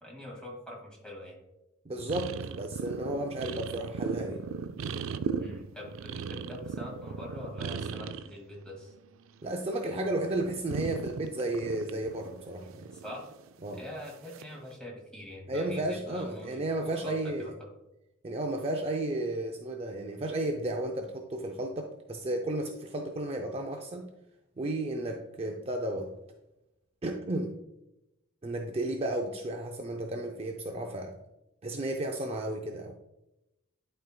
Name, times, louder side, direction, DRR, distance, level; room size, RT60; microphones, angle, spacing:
voice 1, 0.0-1.4 5.4-8.9 12.9-13.2 13.7-17.5, left 1 dB, 5° left, -2 dB, 2.0 m, -44 dB
voice 2, 1.9-4.4 9.4-12.9 13.6-13.8 15.5-17.5 18.2-24.1 24.6-26.1 27.0-27.6 28.4-31.2 31.6-32.9, right 1 dB, 30° right, 3 dB, 0.5 m, -33 dB
sound 1, 2.0-8.3 8.7-9.7 10.0-13.5 14.3-14.6, right 6 dB, 85° right, 0.4 m, -37 dB
11.5 x 4.5 x 2.2 m, 0.92 s
head